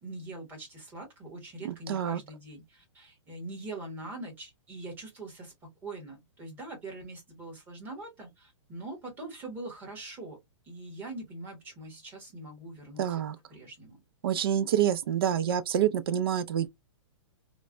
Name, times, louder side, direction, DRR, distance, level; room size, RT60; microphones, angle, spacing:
voice 1, 0.0-10.4 10.6-13.2 13.5-14.0, right 2 dB, 10° right, 1.0 m, -43 dB
voice 2, 1.6-2.2 13.0-13.4 14.2-16.7, right 10 dB, 50° right, 0.4 m, -27 dB
3.1 x 2.1 x 2.4 m
hypercardioid pair, 165°, 16 cm